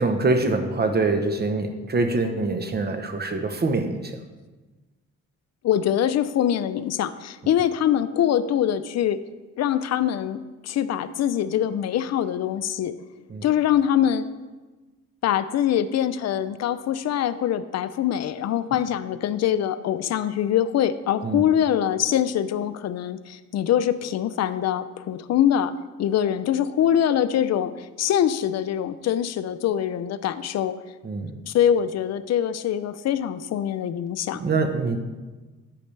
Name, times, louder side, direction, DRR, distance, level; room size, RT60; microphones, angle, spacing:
voice 1, 0.0-4.2 13.3-13.5 21.2-21.4 31.0-31.4 34.3-35.0, right 3 dB, 35° right, 6 dB, 0.9 m, -24 dB
voice 2, 5.6-9.2 9.6-12.9 13.4-14.2 15.2-25.7 26.0-30.8 31.4-34.4, left 10 dB, 60° left, 13 dB, 0.6 m, -23 dB
10.0 x 8.5 x 3.3 m, 1.2 s
cardioid pair, 90°, 30 cm